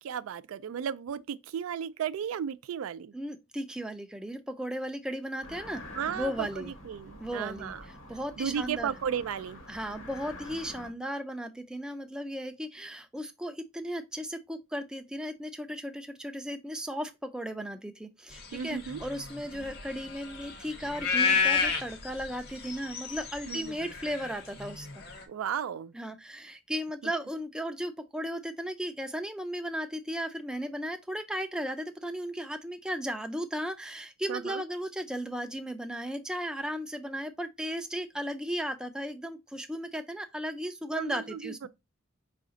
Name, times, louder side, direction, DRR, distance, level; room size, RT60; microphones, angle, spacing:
voice 1, 0.0-3.1 6.0-7.8 8.4-9.6 18.5-19.0 23.5-23.7 25.3-25.9 27.0-27.1 34.3-34.6 40.9-41.7, right 8 dB, 85° right, 0.3 m, -34 dB
voice 2, 3.1-6.7 7.2-7.7 8.1-8.9 9.7-25.0 25.9-41.7, equal, 5° right, 0.3 m, -36 dB
sound 1, 5.4-10.9, left 1 dB, 75° left, 1.2 m, -46 dB
sound 2, 18.4-25.2, left 5 dB, 50° left, 0.8 m, -31 dB
4.9 x 2.5 x 3.8 m
head